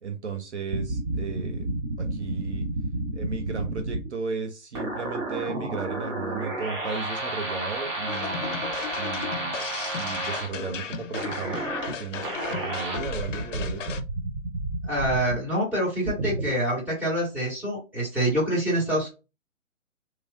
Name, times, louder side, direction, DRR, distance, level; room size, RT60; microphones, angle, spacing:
voice 1, 0.0-1.7 2.0-2.7 3.1-8.6 9.0-9.6 10.0-11.7 12.0-13.9, right 5 dB, 60° right, 5 dB, 0.6 m, -35 dB
sound 1, 0.7-4.1 4.7-10.5 11.1-12.0 12.2-15.4 16.1-16.5, right 2 dB, 25° right, 0.7 m, -31 dB
sound 2, 8.1-14.0, left 6 dB, 70° left, 0.5 m, -36 dB
voice 2, 14.8-19.1, right 1 dB, 5° right, -7 dB, 1.3 m, -26 dB
3.0 x 2.7 x 2.4 m, 0.29 s
figure-of-eight pair, 130°, 39 cm